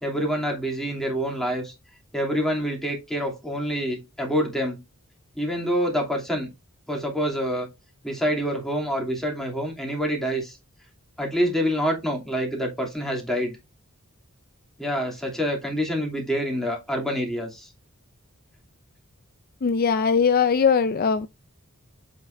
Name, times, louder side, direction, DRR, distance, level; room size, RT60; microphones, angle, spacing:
voice 1, 0.0-1.7 2.1-4.8 5.4-6.5 6.9-7.7 8.0-10.6 11.2-13.6 14.8-17.7, equal, ahead, 2.8 m, -26 dB
voice 2, 19.6-21.3, left 6 dB, 45° left, 0.4 m, -20 dB
8.0 x 5.6 x 2.6 m
head